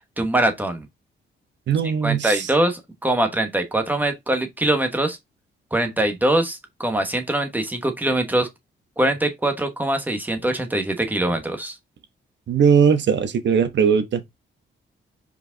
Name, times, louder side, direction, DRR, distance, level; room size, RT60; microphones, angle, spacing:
voice 1, 0.2-0.9 2.0-5.2 5.7-8.5 9.0-11.7, right 1 dB, 10° right, 1.2 m, -23 dB
voice 2, 1.7-2.5 12.5-14.3, right 7 dB, 60° right, 1.2 m, -19 dB
5.1 x 4.8 x 4.0 m
wide cardioid pair, 155°, 21 cm